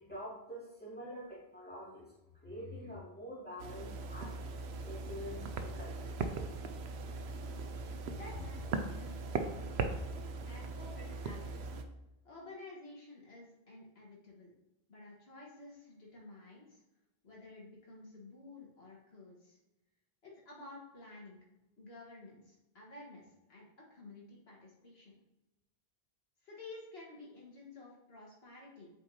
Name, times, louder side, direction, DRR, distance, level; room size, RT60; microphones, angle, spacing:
voice 1, 0.0-2.1 2.4-4.4 4.8-6.2 7.8-8.2, equal, 10° left, -7 dB, 2.2 m, -46 dB
sound 1, 3.6-11.8, right 4 dB, 90° right, 0.9 m, -39 dB
voice 2, 8.1-9.9 10.4-11.8 12.2-14.5 14.9-16.8 17.2-19.6 20.2-21.4 21.8-25.1 26.4-28.9, left 2 dB, 80° left, -3 dB, 1.8 m, -52 dB
8.4 x 4.4 x 2.8 m, 0.98 s
omnidirectional pair, 1.0 m